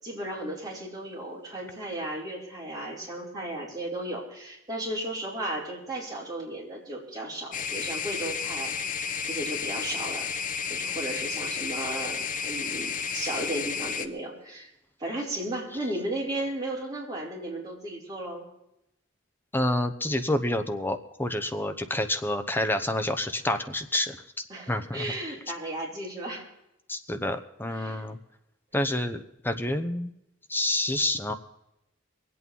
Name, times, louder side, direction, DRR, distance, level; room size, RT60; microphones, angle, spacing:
voice 1, 0.0-10.3 10.7-14.7 15.0-18.4 24.5-26.4 27.7-28.1, right 1 dB, 20° right, -4 dB, 5.1 m, -35 dB
sound 1, 7.5-14.1, left 6 dB, 40° left, 0.9 m, -32 dB
voice 2, 19.5-24.2 24.7-25.1 26.9-28.2 28.7-30.1 30.5-31.3, left 1 dB, 10° left, 7 dB, 0.9 m, -28 dB
23.0 x 8.6 x 5.4 m, 0.84 s
head